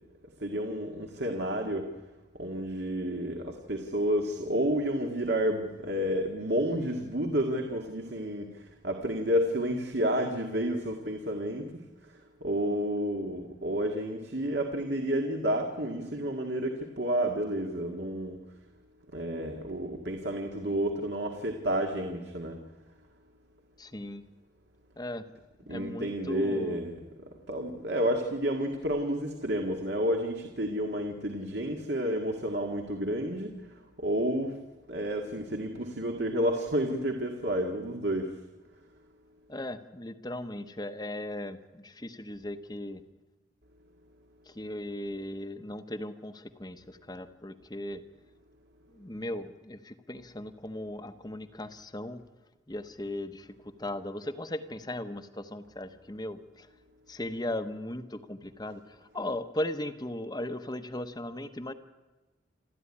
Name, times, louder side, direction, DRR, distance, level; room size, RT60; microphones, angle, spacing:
voice 1, 0.4-1.9 2.4-8.5 8.8-11.6 12.4-18.4 19.1-22.6 25.7-27.0 27.5-33.5 34.0-34.5 34.9-38.3, equal, 65° right, 3 dB, 2.1 m, -30 dB
voice 2, 23.8-24.2 25.0-25.3 25.6-26.8 39.5-43.0 44.5-48.0 48.9-52.2 52.7-53.5 53.8-56.7 57.1-61.7, left 1 dB, 20° left, 8 dB, 1.0 m, -37 dB
28.5 x 12.5 x 9.9 m, 1.2 s
head